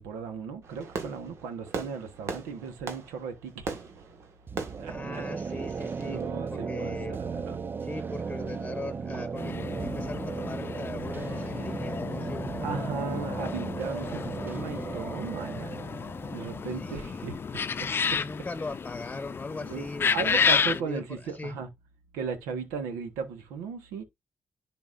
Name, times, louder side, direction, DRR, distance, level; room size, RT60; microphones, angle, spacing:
voice 1, 0.0-3.8 4.8-5.2 6.0-7.6 12.6-15.7 16.3-17.3 17.8-18.2 19.7-21.7 22.1-24.0, right 5 dB, 90° right, 1.2 m, -36 dB
Fireworks, 0.6-6.2, right 4 dB, 70° right, 1.5 m, -40 dB
sound 1, 4.5-18.1, right 5 dB, 45° right, 0.5 m, -36 dB
voice 2, 4.9-6.2 6.5-7.2 7.8-12.6 16.7-17.3 18.1-21.6, left 3 dB, 25° left, 1.0 m, -40 dB
sound 2, 9.4-20.8, left 6 dB, 50° left, 0.5 m, -31 dB
10.5 x 4.1 x 2.5 m
supercardioid pair, 45°, 5 cm